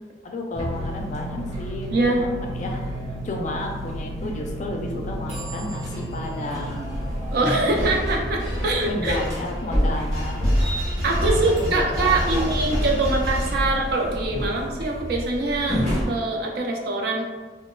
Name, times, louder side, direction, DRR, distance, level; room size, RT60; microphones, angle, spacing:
voice 1, 0.2-2.3 2.5-2.8 3.2-6.9 8.5-8.6 8.9-10.5 11.1-12.5, left 1 dB, 45° left, 2 dB, 0.3 m, -32 dB
sound 1, 0.5-16.0, equal, 40° right, 1.0 m, -29 dB
voice 2, 1.9-2.2 7.3-9.2 11.0-17.2, right 2 dB, 60° right, 1 dB, 0.4 m, -24 dB
sound 2, 7.8-14.1, equal, 80° right, 0.8 m, -30 dB
2.9 x 2.1 x 2.2 m, 1.4 s
head